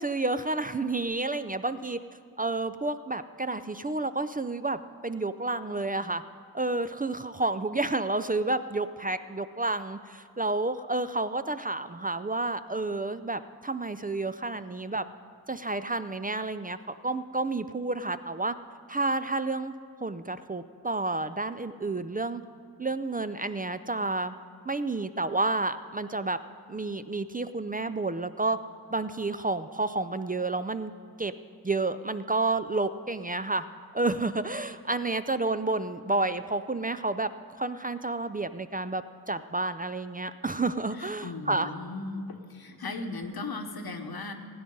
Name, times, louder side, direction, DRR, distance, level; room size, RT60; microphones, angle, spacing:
voice 1, 0.0-2.0 2.4-6.2 6.5-15.0 15.5-18.5 18.9-19.7 20.0-22.4 22.8-24.3 24.7-26.4 26.7-28.6 28.9-30.9 31.2-31.3 31.6-33.6 33.9-37.3 37.6-39.0 39.3-41.7, right 2 dB, 25° right, 12 dB, 0.4 m, -30 dB
voice 2, 40.9-44.3, left 3 dB, 75° left, 6 dB, 1.1 m, -37 dB
16.0 x 9.4 x 5.3 m, 2.2 s
wide cardioid pair, 50°, 37 cm